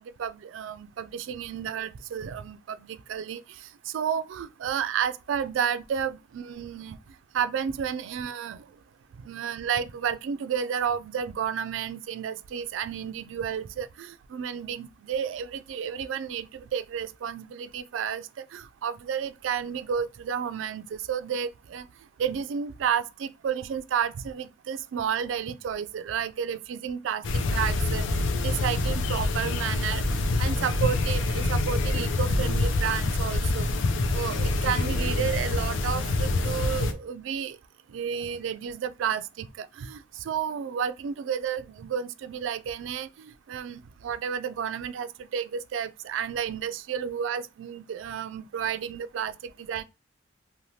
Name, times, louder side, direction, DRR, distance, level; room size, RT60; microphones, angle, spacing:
voice 1, 0.2-3.4 3.9-7.0 7.3-8.6 9.2-21.9 22.2-27.3 27.5-28.0 28.4-30.0 30.4-37.6 37.9-49.8, right 8 dB, 75° right, 0.3 m, -31 dB
sound 1, 27.2-36.9, left 2 dB, 75° left, 0.5 m, -26 dB
2.7 x 2.2 x 3.1 m
head